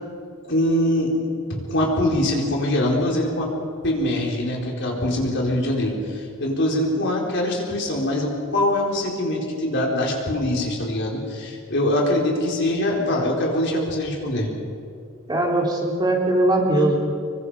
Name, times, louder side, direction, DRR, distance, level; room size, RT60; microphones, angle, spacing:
voice 1, 0.4-3.5 3.8-14.5, left 1 dB, 60° left, -1 dB, 4.6 m, -23 dB
voice 2, 15.3-17.0, right 1 dB, 20° right, -1 dB, 3.6 m, -20 dB
27.0 x 23.0 x 5.1 m, 2.5 s
head